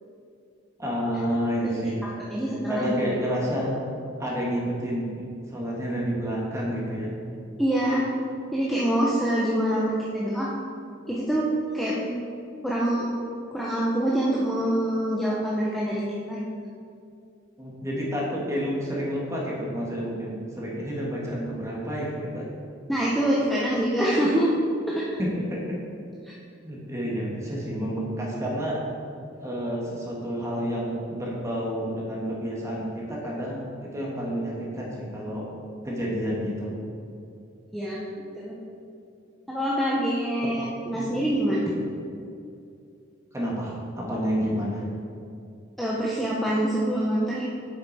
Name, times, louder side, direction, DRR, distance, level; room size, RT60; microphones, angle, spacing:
voice 1, 0.8-2.1 2.7-3.7 4.2-7.1 17.6-22.4 25.2-25.8 26.6-28.8 29.4-35.4 35.8-36.7 40.4-40.5 40.9-41.1 43.3-44.8, equal, 15° right, -4 dB, 1.6 m, -29 dB
voice 2, 2.3-3.1 7.6-8.0 8.5-10.5 11.1-11.5 11.7-12.1 12.6-13.1 13.5-16.0 16.3-16.5 22.9-24.5 24.9-25.2 37.7-38.0 38.4-38.6 39.5-41.7 45.8-47.5, right 1 dB, ahead, -7 dB, 0.8 m, -25 dB
7.9 x 6.6 x 4.1 m, 2.5 s
head